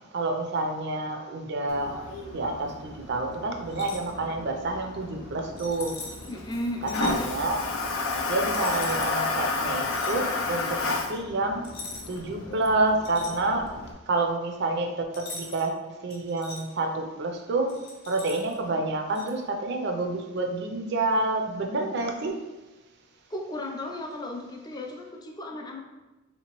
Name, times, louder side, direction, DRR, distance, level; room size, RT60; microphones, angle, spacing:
voice 1, 0.1-2.0 2.3-6.0 7.0-7.6 8.3-11.6 12.1-13.7 14.1-17.8 18.1-22.4, right 2 dB, 55° right, 3 dB, 0.5 m, -28 dB
Toilet flush, 1.7-13.9, left 3 dB, 85° left, 0.5 m, -32 dB
sound 1, 3.7-4.1 5.6-6.3 6.9-7.2 8.5-9.1 9.9-10.2 11.6-12.3 12.6-13.8 15.1-15.7 16.1-16.6 17.7-18.5 19.1-19.3, left 2 dB, 55° left, 0.7 m, -41 dB
voice 2, 6.3-7.3 23.3-25.8, left 1 dB, 20° left, 1 dB, 0.4 m, -35 dB
3.6 x 2.8 x 2.9 m, 1.1 s
head